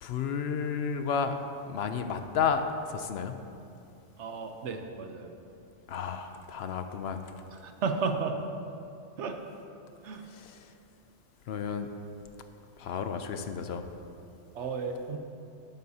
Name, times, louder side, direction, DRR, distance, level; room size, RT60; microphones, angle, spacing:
voice 1, 0.0-1.4 1.7-3.4 5.9-7.2 10.3-10.7 11.5-11.9 12.8-13.9, left 6 dB, 70° left, 7 dB, 0.8 m, -32 dB
voice 2, 4.2-5.3 7.6-8.4 9.2-9.4 10.0-10.2 14.5-15.2, right 4 dB, 80° right, 5 dB, 1.1 m, -33 dB
12.0 x 11.0 x 2.8 m, 2.6 s
omnidirectional pair, 1.2 m